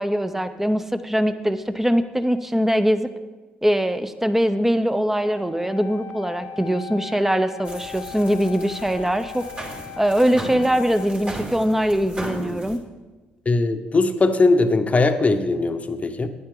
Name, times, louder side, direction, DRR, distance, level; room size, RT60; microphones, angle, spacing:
voice 1, 0.0-3.1 3.6-9.5 10.0-12.8, equal, 5° right, 11 dB, 0.8 m, -22 dB
Wind instrument woodwind instrument, 5.2-11.1, left 9 dB, 60° left, 0.6 m, -39 dB
sound 1, 7.6-12.8, right 1 dB, 30° right, 2.8 m, -36 dB
voice 2, 13.5-16.3, left 3 dB, 30° left, 8 dB, 0.9 m, -20 dB
10.5 x 9.6 x 3.8 m, 1.2 s
hypercardioid pair, 55°, 4 cm